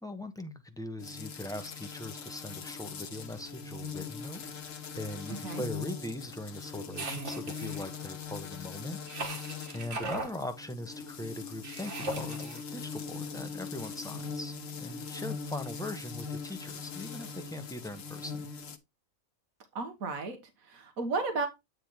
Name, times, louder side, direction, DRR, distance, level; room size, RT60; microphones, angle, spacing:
voice 1, 0.0-9.0 9.7-18.5, left 1 dB, 5° left, 0.8 m, -41 dB
sound 1, 1.0-18.8, left 5 dB, 75° left, 1.4 m, -41 dB
sound 2, 6.9-7.9 9.1-10.3 11.6-12.6, right 2 dB, 60° right, 1.7 m, -38 dB
voice 2, 19.7-21.5, right 3 dB, 85° right, 1.7 m, -34 dB
9.4 x 3.4 x 4.4 m
omnidirectional pair, 1.4 m